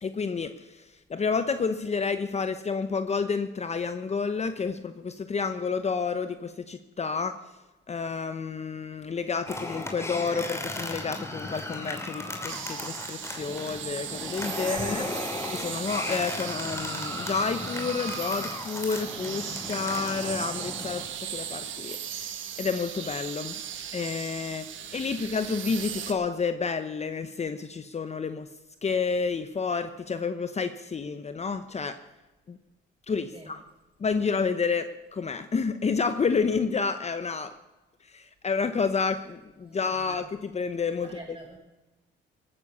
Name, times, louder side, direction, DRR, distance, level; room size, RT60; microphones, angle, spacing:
voice 1, 0.0-7.4 7.9-15.1 15.5-21.0 21.3-22.0 22.6-23.6 23.9-24.7 24.9-28.5 28.8-32.0 32.5-32.6 33.1-33.6 34.0-37.5 38.0-41.1, left 5 dB, 35° left, 10 dB, 0.9 m, -30 dB
sound 1, 9.5-21.1, left 2 dB, 15° left, 2.9 m, -36 dB
sound 2, 12.5-26.1, right 9 dB, 75° right, 1.6 m, -37 dB
voice 2, 39.6-40.3 41.0-41.6, right 2 dB, 25° right, 0 dB, 7.2 m, -44 dB
18.0 x 9.9 x 6.9 m, 1.1 s
cardioid pair, 90°, 20 cm